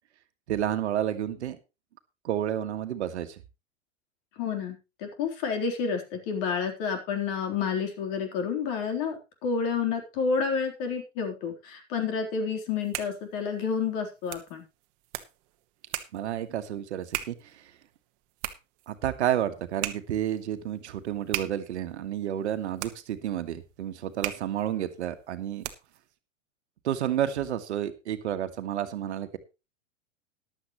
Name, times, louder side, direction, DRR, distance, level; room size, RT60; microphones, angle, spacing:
voice 1, 0.5-1.6 2.2-3.4 16.1-17.6 18.9-25.6 26.8-29.4, right 11 dB, 60° right, 9 dB, 1.6 m, -30 dB
voice 2, 4.4-14.6, left 5 dB, 45° left, 5 dB, 3.8 m, -30 dB
sound 1, 12.6-26.1, right 14 dB, 40° right, 1.4 m, -40 dB
14.5 x 11.5 x 3.1 m, 0.28 s
figure-of-eight pair, 100°, 38 cm